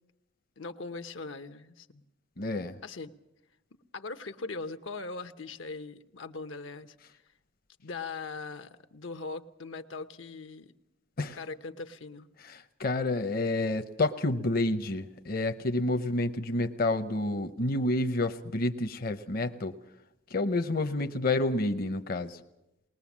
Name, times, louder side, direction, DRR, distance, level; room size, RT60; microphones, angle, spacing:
voice 1, 0.6-2.0 2.8-3.1 3.9-6.9 7.8-10.7 11.3-12.3, left 3 dB, 85° left, 9 dB, 0.9 m, -40 dB
voice 2, 2.4-2.8 11.2-11.4 12.4-19.7 20.3-22.4, left 2 dB, 50° left, 8 dB, 0.8 m, -29 dB
20.5 x 19.5 x 7.3 m, 0.91 s
head